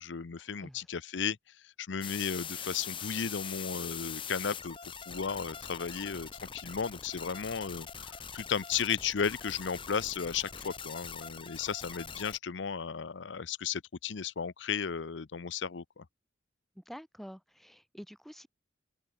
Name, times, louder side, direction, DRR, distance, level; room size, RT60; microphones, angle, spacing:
voice 1, 0.0-1.4 1.6-4.8 5.1-16.0, left 6 dB, 80° left, 0.7 m, -35 dB
sound 1, 2.0-12.4, left 7 dB, 30° left, 2.8 m, -43 dB
voice 2, 16.8-18.5, equal, ahead, 3.2 m, -48 dB
open air
head